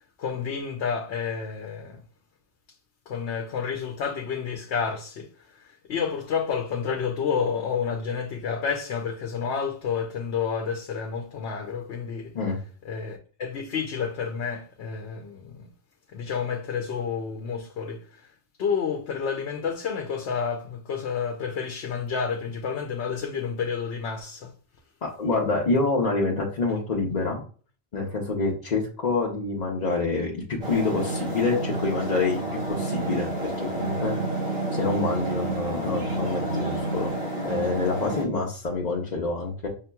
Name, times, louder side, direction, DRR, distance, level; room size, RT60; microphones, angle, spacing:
voice 1, 0.2-2.0 3.1-12.3 12.8-15.7 16.1-18.3 18.6-24.5, left 6 dB, 80° left, 0.9 m, -30 dB
voice 2, 25.0-27.4 27.9-32.4 32.7-34.2 34.7-37.1 37.4-39.7, left 3 dB, 45° left, 0.8 m, -27 dB
sound 1, 30.6-38.3, right 2 dB, 75° right, 2.6 m, -29 dB
5.6 x 2.8 x 2.2 m
omnidirectional pair, 1.1 m